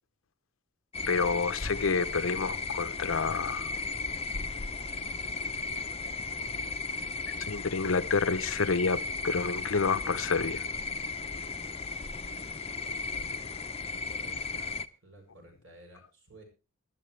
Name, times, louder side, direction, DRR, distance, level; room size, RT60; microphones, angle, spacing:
sound 1, 0.9-14.9, left 3 dB, 30° left, 0.6 m, -35 dB
voice 1, 1.1-3.7 7.4-10.7, left 4 dB, 75° left, 0.7 m, -29 dB
voice 2, 12.8-14.7 15.0-16.4, right 1 dB, 65° right, 7.5 m, -55 dB
21.0 x 12.0 x 3.2 m
head